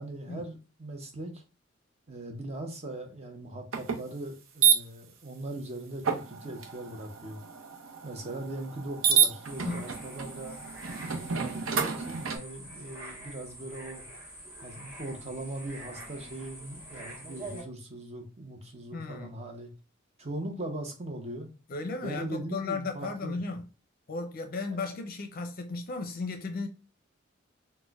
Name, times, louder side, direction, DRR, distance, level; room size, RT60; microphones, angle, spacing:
voice 1, 0.0-1.4 2.1-7.4 8.0-10.6 11.1-14.0 14.6-19.7 20.2-21.5 22.0-23.4 24.7-24.8, right 1 dB, 30° right, 0.7 m, -40 dB
sound 1, 3.7-4.0 4.6-4.8 6.0-12.4, right 8 dB, 85° right, 0.6 m, -29 dB
sound 2, 9.4-17.6, right 1 dB, 10° right, 1.2 m, -45 dB
voice 2, 18.9-19.3 21.7-23.6 24.1-26.7, left 3 dB, 45° left, 0.5 m, -35 dB
4.2 x 2.2 x 2.3 m
head